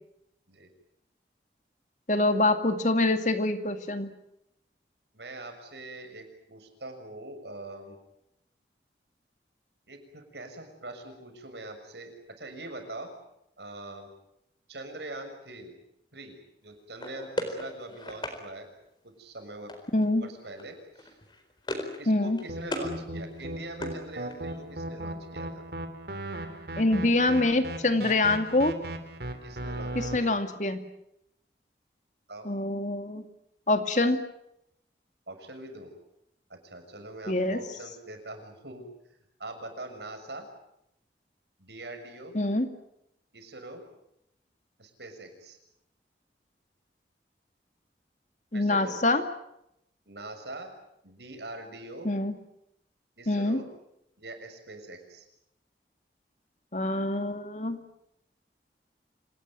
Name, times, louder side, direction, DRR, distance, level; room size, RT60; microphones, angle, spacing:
voice 1, 2.1-4.1 19.9-20.2 22.1-22.4 26.8-28.8 30.0-30.8 32.5-33.2 33.7-34.2 37.3-37.6 42.3-42.7 48.5-49.2 52.0-52.3 53.3-53.6 56.7-57.8, left 2 dB, 45° left, 8 dB, 2.3 m, -25 dB
voice 2, 5.1-8.0 9.9-13.1 13.6-14.1 14.7-15.7 16.1-18.7 19.0-19.7 20.1-21.1 22.0-25.6 29.4-30.4 32.3-32.5 35.3-35.9 36.5-38.9 39.4-40.5 41.6-42.4 43.3-43.8 44.8-45.6 48.5-49.1 50.1-50.8 51.0-52.1 53.2-53.7 54.2-55.3, right 2 dB, 80° right, 5 dB, 6.8 m, -43 dB
sound 1, 17.0-18.4 19.7-20.1 20.4-20.6 20.9-22.0 22.3-22.9 23.3-24.6, left 1 dB, 25° left, 4.4 m, -37 dB
sound 2, 22.5-30.2, right 1 dB, 65° right, 3.1 m, -37 dB
27.5 x 19.0 x 9.5 m, 0.81 s
head